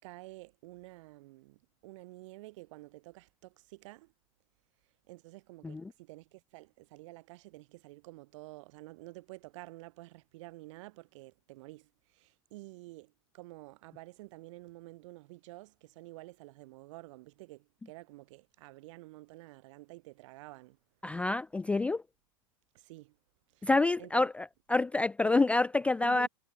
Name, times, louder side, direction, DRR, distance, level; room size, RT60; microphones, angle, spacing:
voice 1, 0.0-4.1 5.1-11.9 12.2-20.8 22.7-23.1 23.6-23.7 24.0-24.3 25.2-25.4 26.0-26.3, right 20 dB, 60° right, 5.2 m, -50 dB
voice 2, 21.0-22.0 23.6-26.3, left 2 dB, 5° left, 0.4 m, -28 dB
hypercardioid pair, 100°, 18 cm